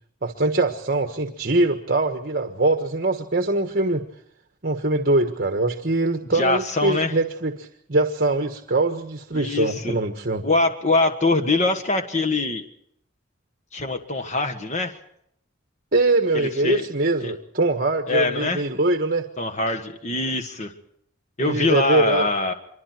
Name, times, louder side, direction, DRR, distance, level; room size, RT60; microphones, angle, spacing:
voice 1, 0.2-4.0 4.6-10.4 15.9-19.3 21.4-22.3, right 2 dB, 50° right, 7 dB, 1.5 m, -22 dB
voice 2, 6.3-7.1 9.3-10.0 10.4-12.6 13.7-15.0 16.3-16.9 17.2-17.3 18.1-18.6 19.4-20.7 21.4-22.5, left 2 dB, 35° left, 7 dB, 1.7 m, -23 dB
26.5 x 24.0 x 4.6 m, 0.72 s
head